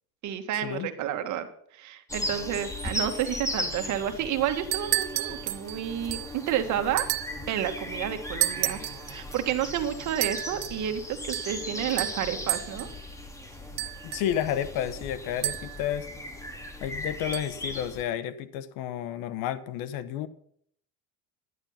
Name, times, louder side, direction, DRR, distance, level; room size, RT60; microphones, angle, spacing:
voice 1, 0.2-1.5 1.8-7.1 7.5-8.8 9.1-12.9, right 10 dB, 60° right, 8 dB, 1.7 m, -30 dB
sound 1, 2.1-18.0, left 1 dB, 10° left, 2.1 m, -37 dB
sound 2, 4.5-6.4 7.0-7.5 8.4-9.2 10.2-10.8 11.3-11.6 12.0-13.0 13.8-14.5 15.4-15.9 17.3-17.4, right 18 dB, 85° right, 0.8 m, -31 dB
voice 2, 14.0-16.1 16.8-20.3, left 10 dB, 80° left, 15 dB, 1.1 m, -31 dB
11.0 x 10.5 x 5.7 m, 0.64 s
cardioid pair, 115°, 33 cm